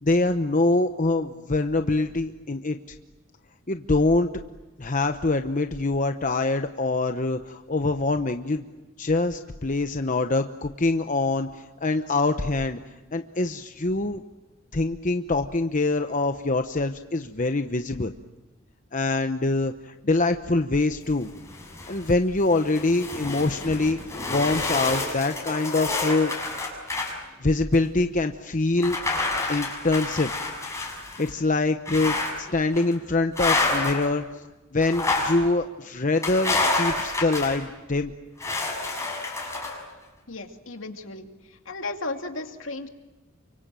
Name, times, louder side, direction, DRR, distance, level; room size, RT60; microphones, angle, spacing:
voice 1, 0.0-2.8 3.7-4.3 4.8-8.7 9.0-12.8 13.1-14.2 14.7-18.1 18.9-21.3 21.9-24.0 24.3-26.3 27.4-29.0 29.5-30.3 31.2-32.1 32.5-34.2 34.7-38.1, left 2 dB, 40° left, 7 dB, 1.0 m, -24 dB
sound 1, 21.2-22.1 22.5-27.1 27.7-27.8 28.8-31.3 31.9-32.4 32.7-32.9 33.4-34.1 34.8-35.4 36.2-37.6 38.4-39.8, left 3 dB, 15° left, 6.5 m, -28 dB
voice 2, 40.3-41.3 41.7-42.9, left 2 dB, 70° left, 5 dB, 2.5 m, -34 dB
29.5 x 25.0 x 7.6 m, 1.1 s
head